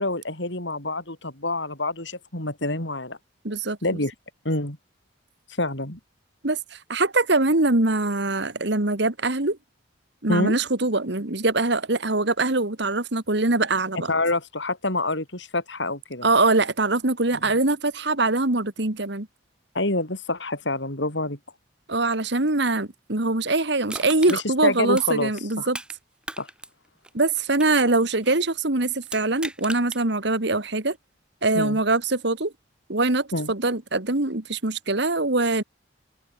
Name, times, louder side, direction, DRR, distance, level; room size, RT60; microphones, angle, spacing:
voice 1, 0.0-3.2 3.8-4.1 4.5-4.8 5.6-6.0 10.3-10.5 14.1-16.3 19.7-21.4 24.3-25.3 25.6-25.7 26.4-26.5 31.6-31.8 33.3-33.5, left 2 dB, 65° left, 5.3 m, -27 dB
voice 2, 3.4-4.0 6.4-9.6 10.2-14.1 16.2-19.3 21.9-25.8 27.1-31.0 31.4-32.5 32.9-35.6, right 2 dB, 60° right, 1.9 m, -23 dB
Crushing, 23.9-26.0 26.2-28.5 29.0-30.0 30.5-30.6, right 1 dB, 5° right, 3.2 m, -38 dB
head